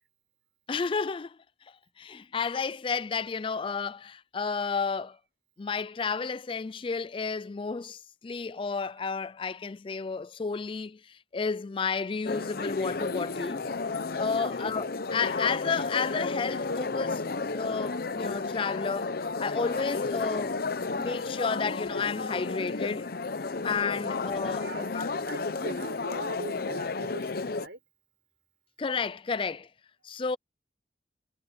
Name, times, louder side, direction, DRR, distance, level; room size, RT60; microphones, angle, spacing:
voice 1, 0.7-1.4 2.0-5.2 5.6-13.6 14.2-17.2 17.5-19.1 19.4-20.5 20.9-23.1 23.6-25.1 28.8-29.7 30.0-30.4, left 5 dB, 25° left, 0.4 m, -32 dB
sound 1, 12.2-27.7, left 3 dB, 55° left, 0.7 m, -32 dB
voice 2, 24.6-24.9 25.3-27.8, right 2 dB, 70° right, 5.9 m, -41 dB
head